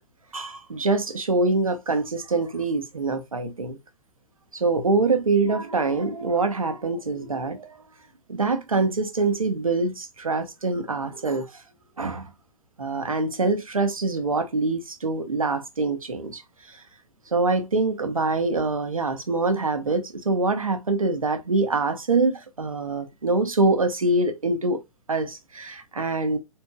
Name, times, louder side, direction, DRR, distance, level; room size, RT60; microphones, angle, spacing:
voice 1, 0.3-3.8 4.5-7.8 8.3-11.5 12.0-12.3 12.8-16.4 16.7-16.8 17.3-24.8 25.1-26.4, right 3 dB, 80° right, 1.0 m, -24 dB
4.5 x 4.3 x 2.2 m
figure-of-eight pair, 110°, 18 cm